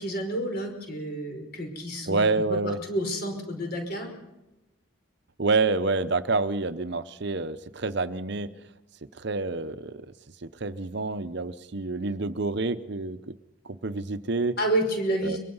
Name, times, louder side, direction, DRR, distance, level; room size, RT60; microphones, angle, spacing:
voice 1, 0.0-2.2 2.5-4.1 14.6-15.4, right 1 dB, 45° left, 4 dB, 5.4 m, -29 dB
voice 2, 2.1-2.8 5.4-8.5 9.2-10.1 10.4-13.3 13.6-14.6 15.2-15.4, right 3 dB, 55° right, 12 dB, 0.8 m, -28 dB
23.5 x 22.5 x 5.6 m, 0.97 s
head